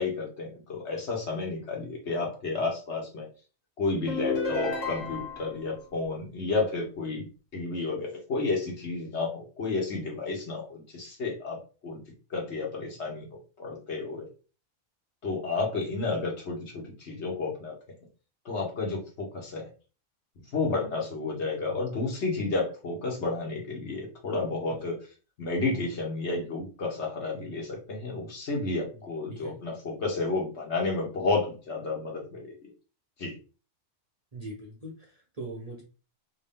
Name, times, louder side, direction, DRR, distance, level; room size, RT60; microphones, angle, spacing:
voice 1, 0.0-3.3 3.8-7.3 7.5-11.6 11.8-12.0 12.3-13.3 13.6-14.3 15.2-17.7 18.4-19.7 20.5-25.0 25.4-32.7 33.2-33.3, left 3 dB, 60° left, -1 dB, 1.4 m, -31 dB
sound 1, 4.1-5.5, left 2 dB, 80° left, 1.3 m, -31 dB
voice 2, 34.3-35.8, right 2 dB, 40° right, -2 dB, 0.6 m, -41 dB
3.1 x 2.7 x 3.4 m, 0.35 s
omnidirectional pair, 1.3 m